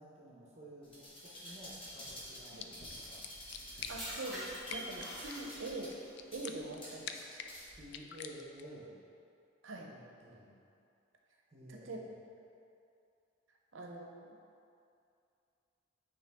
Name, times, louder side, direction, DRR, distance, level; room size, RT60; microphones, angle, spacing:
voice 1, 0.0-3.3 7.7-8.9 9.8-10.5 11.5-12.1, equal, 35° right, -6 dB, 0.9 m, -53 dB
sound 1, 0.8-7.8 8.3-8.4, equal, 25° left, 1.1 m, -49 dB
sound 2, 2.3-8.8, left 7 dB, 60° left, 0.3 m, -49 dB
sound 3, 2.9-6.0 6.8-7.1, equal, ahead, 1.5 m, -47 dB
voice 2, 3.9-6.0 6.3-7.4 9.6-10.0 11.7-12.0 13.7-14.4, right 2 dB, 80° right, 1 dB, 0.7 m, -44 dB
8.8 x 3.1 x 3.5 m, 2.5 s
head